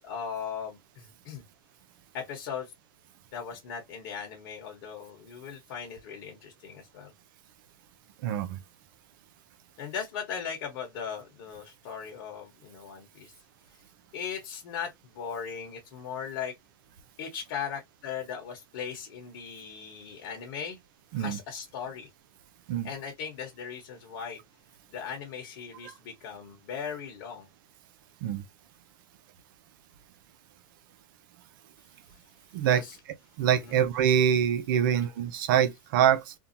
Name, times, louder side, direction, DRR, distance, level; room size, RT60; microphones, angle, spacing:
voice 1, 0.0-1.4 2.1-2.7 3.3-7.1 9.8-13.3 13.7-13.8 14.1-16.5 17.2-20.8 21.1-22.1 22.8-24.4 24.9-27.5 32.7-33.0 33.6-33.7, left 7 dB, 60° left, 1.1 m, -38 dB
voice 2, 8.2-8.6 21.1-21.4 22.7-22.9 25.8-25.9 28.2-28.4 32.5-32.8 33.4-36.3, right 9 dB, 65° right, 0.5 m, -25 dB
2.6 x 2.2 x 2.7 m
hypercardioid pair, 120°, 12 cm